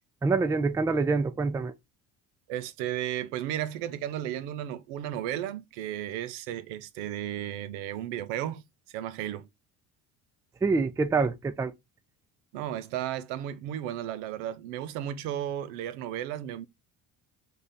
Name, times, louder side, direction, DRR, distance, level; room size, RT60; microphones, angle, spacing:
voice 1, 0.2-1.7 10.6-11.7, right 4 dB, 10° right, 0.3 m, -26 dB
voice 2, 2.5-8.6 8.9-9.5 12.5-16.7, right 11 dB, 80° right, 0.6 m, -34 dB
3.8 x 2.4 x 3.2 m
hypercardioid pair, 65°, 44 cm